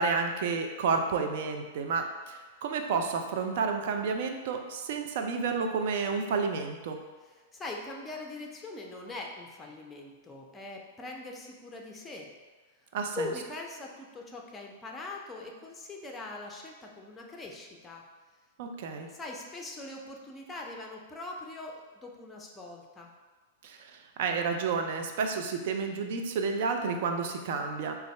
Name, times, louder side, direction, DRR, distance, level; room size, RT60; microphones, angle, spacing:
voice 1, 0.0-7.0 12.9-13.3 18.6-19.1 23.6-23.8 24.2-27.9, right 5 dB, 60° right, 5 dB, 0.4 m, -30 dB
voice 2, 7.2-12.3 13.1-18.0 19.1-23.1, left 2 dB, 15° left, 0 dB, 0.5 m, -42 dB
3.9 x 2.3 x 3.3 m, 1.3 s
figure-of-eight pair, 100°, 0 cm